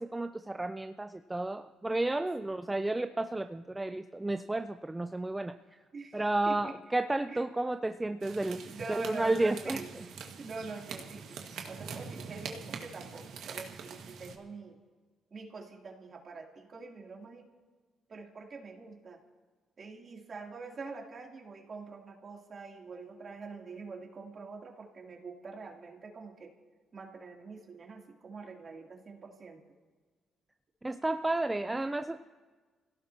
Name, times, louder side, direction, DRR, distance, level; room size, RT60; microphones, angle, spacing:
voice 1, 0.0-5.5 6.1-8.6 8.9-9.8 30.8-32.2, right 2 dB, 15° right, 8 dB, 0.5 m, -32 dB
voice 2, 5.9-6.8 7.3-7.4 8.1-8.2 8.6-9.9 10.4-11.4 11.7-14.8 15.3-17.5 18.1-19.2 19.8-26.5 26.9-29.6 31.7-31.8, right 4 dB, 45° right, 0 dB, 3.0 m, -45 dB
sound 1, 8.2-14.4, right 6 dB, 75° right, 1.7 m, -44 dB
26.5 x 17.0 x 2.9 m, 1.4 s
cardioid pair, 90°, 0 cm